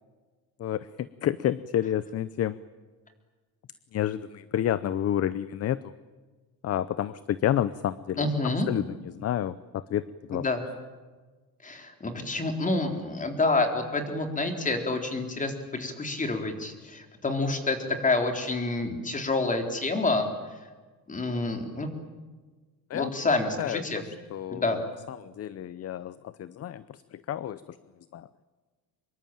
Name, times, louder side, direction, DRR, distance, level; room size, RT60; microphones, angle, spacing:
voice 1, 0.6-2.6 3.9-5.9 6.6-8.3 8.7-8.9 9.1-10.0 10.3-10.4 22.9-23.1 23.6-23.8 24.3-24.8 25.1-27.8 28.1-28.3, left 11 dB, 40° left, 16 dB, 0.7 m, -29 dB
voice 2, 8.2-8.7 10.3-10.6 11.6-20.3 21.1-21.9 22.9-24.0 24.5-24.8, left 2 dB, 20° left, 5 dB, 3.7 m, -28 dB
25.5 x 22.5 x 8.9 m, 1.3 s
cardioid pair, 140°, 37 cm